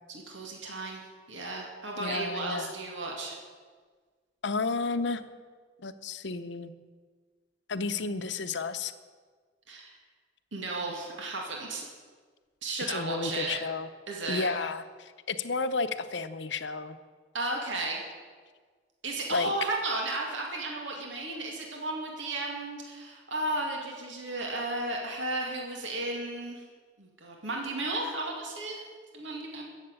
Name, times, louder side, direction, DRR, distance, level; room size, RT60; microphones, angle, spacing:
voice 1, 0.1-1.0 1.3-3.4 9.7-9.9 10.5-11.9 12.6-13.6 14.1-14.5 17.3-18.0 19.0-26.6 27.0-28.8 29.1-29.6, right 2 dB, 80° right, 0 dB, 2.3 m, -34 dB
voice 2, 2.0-2.7 4.4-5.2 5.8-6.7 7.7-8.9 12.9-13.9 14.3-17.0 19.3-19.5, left 4 dB, 70° left, 11 dB, 0.7 m, -32 dB
15.0 x 7.4 x 8.8 m, 1.5 s
head